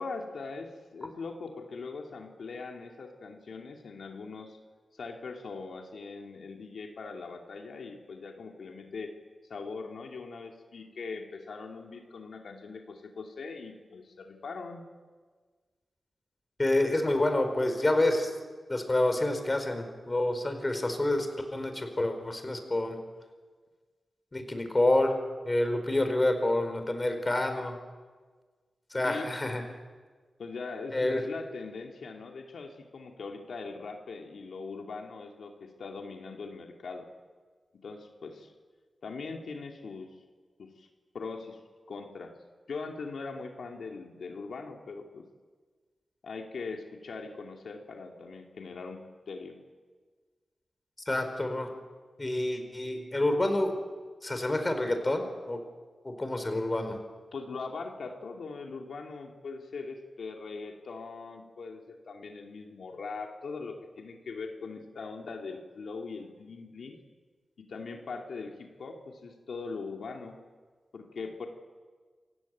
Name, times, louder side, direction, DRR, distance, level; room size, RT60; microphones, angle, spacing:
voice 1, 0.0-4.6 4.9-9.1 9.5-14.8 29.0-29.3 30.4-37.1 37.8-38.5 39.0-40.1 40.6-40.9 41.1-41.6 41.9-42.3 42.7-45.2 46.2-49.6 57.3-67.0 67.6-70.4 70.9-71.5, left 4 dB, 80° left, 2 dB, 2.6 m, -41 dB
voice 2, 16.6-18.3 18.7-21.3 21.5-23.0 24.3-25.1 25.4-27.8 28.9-29.6 30.9-31.2 51.1-51.7 52.2-53.8 54.2-55.6 56.0-57.0, left 1 dB, 25° left, 7 dB, 4.7 m, -28 dB
28.0 x 16.0 x 9.3 m, 1.4 s
cardioid pair, 70°, 0 cm